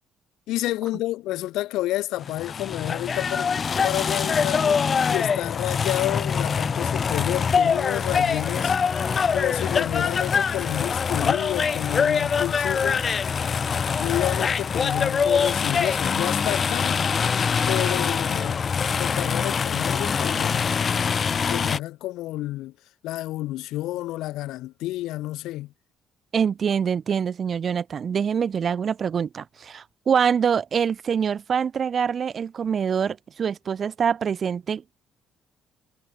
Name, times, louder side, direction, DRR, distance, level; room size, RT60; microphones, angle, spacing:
voice 1, 0.5-3.5 3.8-8.8 9.3-13.0 14.0-17.0 17.7-18.6 19.0-20.7 21.3-22.7 23.0-25.7, left 16 dB, 80° left, 7.7 m, -30 dB
sound 1, 2.2-21.8, left 6 dB, 30° left, 1.2 m, -24 dB
voice 2, 26.3-34.9, right 7 dB, 35° right, 3.5 m, -25 dB
cardioid pair, 165°, 0 cm